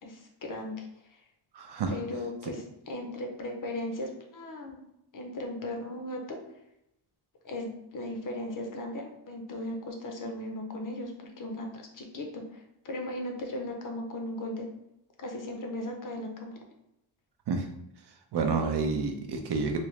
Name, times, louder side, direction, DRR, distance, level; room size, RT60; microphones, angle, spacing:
voice 1, 0.0-0.9 1.9-4.8 5.1-6.4 7.4-14.7 15.2-16.6, left 1 dB, 45° left, 3 dB, 0.6 m, -37 dB
voice 2, 1.5-1.9 17.5-17.7 18.3-19.8, right 4 dB, 55° right, 4 dB, 0.6 m, -29 dB
3.2 x 2.8 x 3.1 m, 0.84 s
wide cardioid pair, 155°, 47 cm